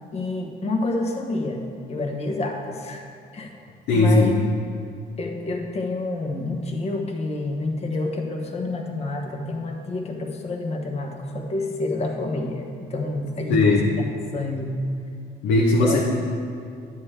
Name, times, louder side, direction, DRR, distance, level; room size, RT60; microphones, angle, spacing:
voice 1, 0.1-3.0 3.3-3.5 3.9-4.4 5.2-14.0 14.3-14.8 15.8-16.0, left 2 dB, 40° left, 2 dB, 1.1 m, -28 dB
voice 2, 3.9-4.4 13.5-14.0 15.4-16.0, left 2 dB, 80° left, -2 dB, 0.9 m, -18 dB
9.6 x 7.4 x 3.4 m, 2.4 s
cardioid pair, 110°, 17 cm